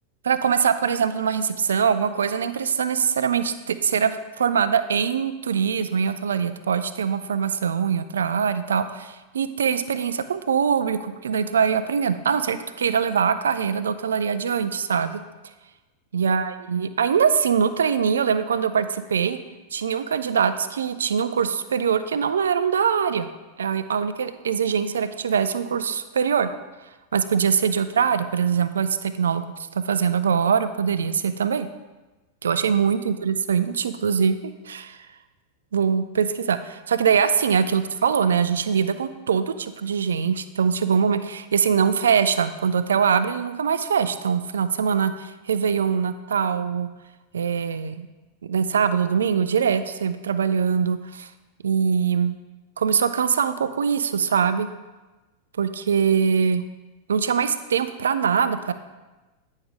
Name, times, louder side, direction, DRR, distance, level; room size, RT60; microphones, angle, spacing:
voice 1, 0.2-15.2 16.1-19.4 19.7-23.3 23.6-26.5 27.1-29.5 29.7-31.7 32.4-35.0 35.7-46.9 47.3-48.1 48.4-51.3 51.6-52.4 52.8-54.7 55.6-56.6 57.1-58.7, right 7 dB, 65° right, 12 dB, 0.4 m, -23 dB
9.3 x 5.3 x 3.5 m, 1.2 s
figure-of-eight pair, 90°, 0 cm